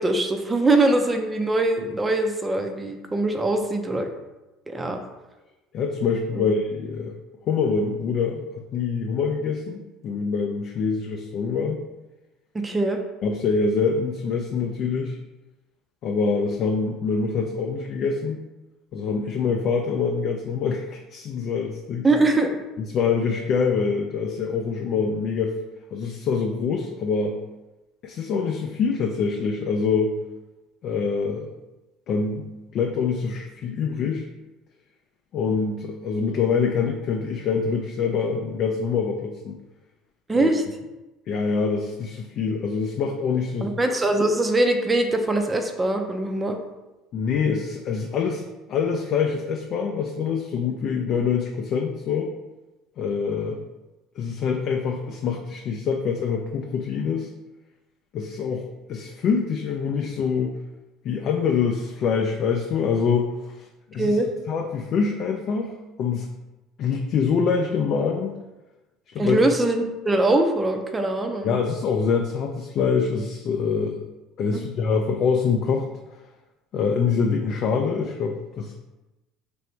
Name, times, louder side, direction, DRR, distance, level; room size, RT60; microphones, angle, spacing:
voice 1, 0.0-4.1 4.7-5.0 6.3-6.5 12.5-13.0 22.0-22.6 40.3-40.6 43.6-46.6 64.0-64.3 69.2-71.6 74.5-74.6, right 2 dB, 20° right, 4 dB, 0.5 m, -22 dB
voice 2, 5.7-7.1 7.5-8.4 8.7-11.8 13.2-15.2 16.0-18.4 18.9-22.1 22.9-25.6 25.9-27.4 28.0-30.2 30.8-31.5 32.1-32.5 32.7-34.2 35.3-39.6 40.4-40.5 41.3-43.8 47.1-48.4 48.7-52.3 53.0-53.6 54.2-57.3 58.1-60.5 61.0-64.2 64.5-65.7 66.0-66.3 66.8-68.3 69.1-69.4 71.4-73.9 74.4-75.9 76.7-78.7, left 5 dB, 55° left, 2 dB, 0.4 m, -25 dB
3.2 x 2.6 x 4.4 m, 1.0 s
supercardioid pair, 95°, 0 cm